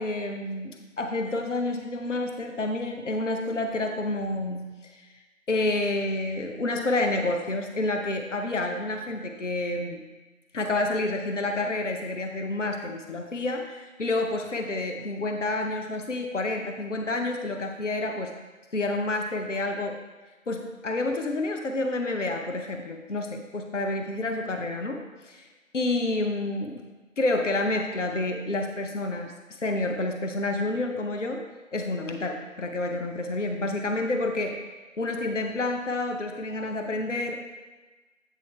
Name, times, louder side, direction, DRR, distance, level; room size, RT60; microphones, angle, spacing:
voice 1, 0.0-5.0 5.5-10.0 10.5-18.4 18.7-20.0 20.5-25.5 25.7-26.8 27.2-29.3 29.6-31.4 31.7-34.6 35.0-37.4, left 2 dB, 60° left, 4 dB, 0.7 m, -29 dB
8.3 x 3.6 x 4.3 m, 1.3 s
figure-of-eight pair, 170°, 41 cm